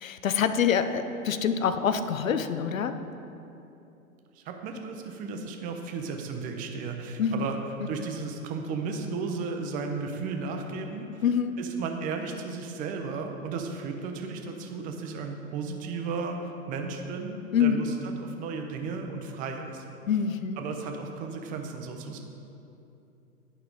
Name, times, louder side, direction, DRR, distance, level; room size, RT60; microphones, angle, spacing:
voice 1, 0.0-3.0 7.2-7.5 11.2-11.6 17.5-17.8 20.1-21.0, left 7 dB, 70° left, 10 dB, 0.6 m, -26 dB
voice 2, 4.3-7.6 7.9-11.2 11.6-19.8 20.6-22.2, right 4 dB, 20° right, 4 dB, 0.6 m, -34 dB
10.0 x 5.5 x 3.7 m, 2.8 s
figure-of-eight pair, 100°, 42 cm